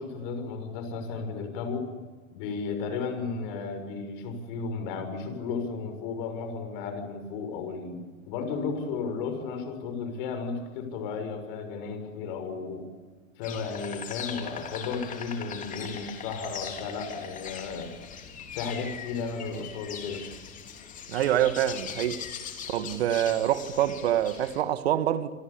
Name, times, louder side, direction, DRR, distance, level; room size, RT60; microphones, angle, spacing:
voice 1, 0.0-1.9 2.3-12.9 13.4-18.0 18.5-20.3, left 5 dB, 40° left, 6.6 m, -34 dB
Insect, 13.4-24.6, left 7 dB, 20° left, 3.5 m, -40 dB
voice 2, 21.1-22.2 22.7-25.3, right 11 dB, 50° right, 1.8 m, -26 dB
28.0 x 26.5 x 7.1 m
figure-of-eight pair, 110°, 41 cm